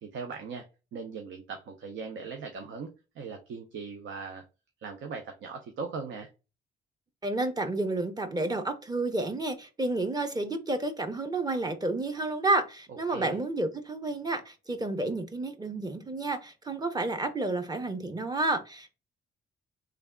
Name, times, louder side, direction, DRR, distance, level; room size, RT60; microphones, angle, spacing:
voice 1, 0.0-0.6 0.9-4.4 4.8-6.3 13.1-13.4, right 5 dB, 70° right, 0.7 m, -39 dB
voice 2, 7.2-18.9, right 2 dB, 20° right, 0.7 m, -30 dB
3.4 x 2.4 x 3.6 m
cardioid pair, 90°, 20 cm